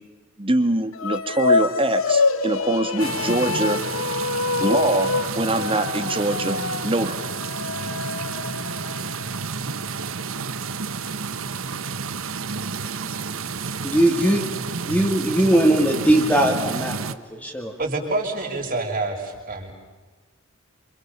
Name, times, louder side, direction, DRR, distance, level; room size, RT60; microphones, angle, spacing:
voice 1, 0.4-3.8 4.6-7.3, right 1 dB, 25° right, 9 dB, 2.2 m, -23 dB
sound 1, 0.9-9.4, left 4 dB, 85° left, 1.3 m, -26 dB
sound 2, 3.0-17.1, right 5 dB, 85° right, 1.2 m, -30 dB
voice 2, 13.8-14.4 14.8-17.7, right 1 dB, 5° left, 1 dB, 2.8 m, -20 dB
voice 3, 17.8-19.7, right 2 dB, 45° right, 0 dB, 6.3 m, -27 dB
29.0 x 27.5 x 7.0 m, 1.3 s
head